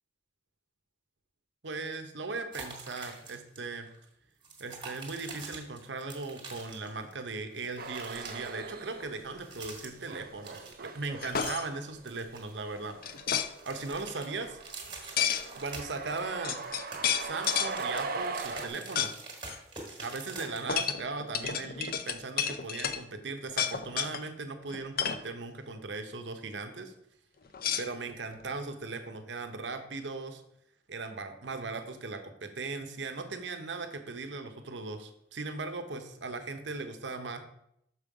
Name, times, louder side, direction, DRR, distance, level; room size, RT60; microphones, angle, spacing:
voice 1, 1.6-3.9 4.6-13.0 13.6-14.6 15.6-16.6 17.2-19.2 20.0-26.9 27.8-30.4 30.9-37.4, right 3 dB, 85° right, 7 dB, 0.9 m, -38 dB
sound 1, 2.5-3.6 3.8-4.0 4.4-7.2 7.5-8.5 9.3-10.1 10.4-11.8 12.1-13.1 13.4-16.3 16.6-20.9, right 3 dB, 30° right, 1.6 m, -46 dB
sound 2, 7.8-9.4 9.7-18.7, right 4 dB, 55° right, 0.6 m, -41 dB
sound 3, 11.2-11.7 13.0-13.5 15.2-15.5 16.1-16.2 16.4-17.7 19.0-19.1 19.4-19.6 20.7-23.0 23.5-24.2 24.7-25.2 27.5-28.4, left 8 dB, 55° left, 0.5 m, -31 dB
6.3 x 5.4 x 4.9 m, 0.75 s
head